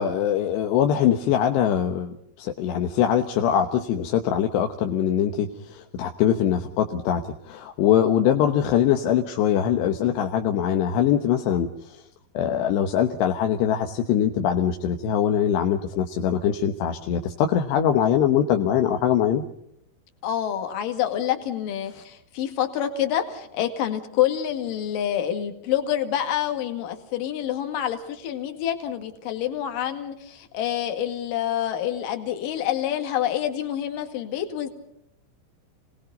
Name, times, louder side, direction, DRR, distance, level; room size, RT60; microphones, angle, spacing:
voice 1, 0.0-12.0 12.3-19.4, left 9 dB, 75° left, 5 dB, 3.2 m, -22 dB
voice 2, 20.2-34.7, left 10 dB, 55° left, 6 dB, 3.4 m, -27 dB
30.0 x 20.0 x 5.3 m, 0.73 s
omnidirectional pair, 5.1 m